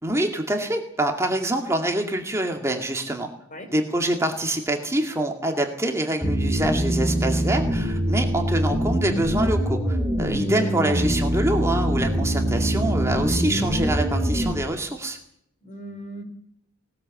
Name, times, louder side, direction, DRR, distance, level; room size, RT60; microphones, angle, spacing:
voice 1, 0.0-3.3 3.7-15.2, right 1 dB, 15° right, 2 dB, 2.1 m, -25 dB
sound 1, 6.2-14.6, equal, 5° left, 3.3 m, -24 dB
voice 2, 10.4-10.8 15.6-16.2, equal, 40° left, 4 dB, 5.4 m, -37 dB
20.0 x 19.5 x 7.7 m, 0.72 s
head